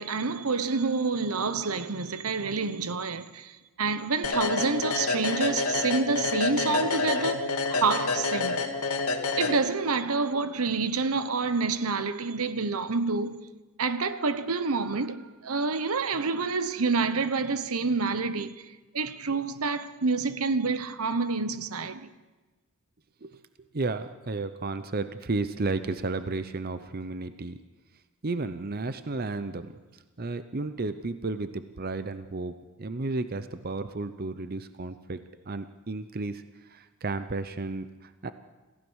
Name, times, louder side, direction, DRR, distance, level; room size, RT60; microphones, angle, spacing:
voice 1, 0.0-8.6 9.4-13.4 13.8-18.6 18.9-22.1, right 4 dB, 80° right, 1.0 m, -28 dB
sound 1, 4.2-10.0, left 4 dB, 85° left, 1.9 m, -28 dB
voice 2, 23.7-27.6 28.2-29.7 30.2-35.2 35.5-38.3, right 3 dB, 45° right, 0.7 m, -33 dB
26.5 x 15.5 x 6.4 m
head